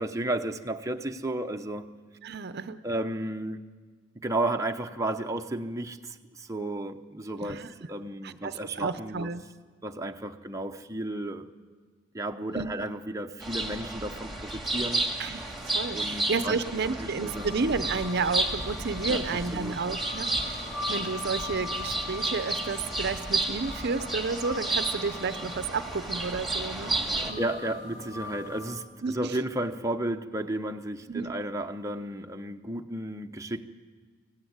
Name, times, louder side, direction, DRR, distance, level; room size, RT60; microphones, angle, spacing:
voice 1, 0.0-1.9 2.8-3.7 4.2-9.3 9.8-11.4 12.1-15.1 15.9-16.6 16.8-17.5 19.1-19.8 27.0-33.6, right 1 dB, 15° right, 0.8 m, -33 dB
voice 2, 2.2-2.8 7.4-7.7 8.2-9.4 12.5-12.7 15.2-26.9 27.3-27.5 29.0-29.3 31.1-31.3, right 4 dB, 55° right, 0.7 m, -31 dB
sound 1, 13.4-27.3, right 2 dB, ahead, 2.3 m, -32 dB
sound 2, 17.2-28.7, left 4 dB, 65° left, 8.0 m, -42 dB
24.5 x 16.0 x 9.6 m
head